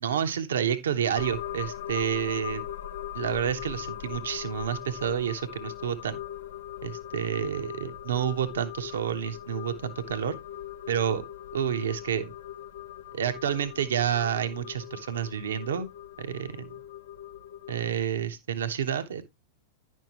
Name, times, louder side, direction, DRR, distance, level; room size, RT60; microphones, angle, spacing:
voice 1, 0.0-2.6 3.1-6.2 6.8-10.3 10.9-11.2 11.5-12.3 13.1-15.9 16.2-16.8 17.7-19.2, right 9 dB, 65° right, 0.9 m, -29 dB
sound 1, 1.1-17.9, left 11 dB, 60° left, 0.6 m, -40 dB
10.5 x 6.3 x 3.0 m
figure-of-eight pair, 90°, 0 cm